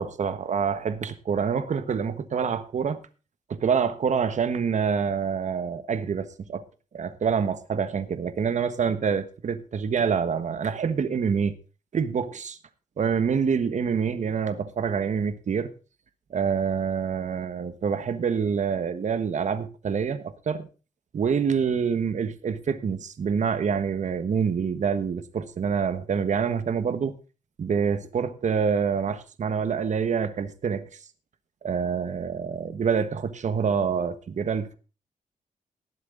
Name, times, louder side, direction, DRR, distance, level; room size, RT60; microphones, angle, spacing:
voice 1, 0.0-3.0 3.5-6.6 6.9-11.6 11.9-12.6 13.0-15.7 16.3-20.7 21.1-27.1 27.6-30.9 31.6-34.8, right 6 dB, 60° right, 1.3 m, -26 dB
19.0 x 7.8 x 3.9 m
cardioid pair, 90°, 14 cm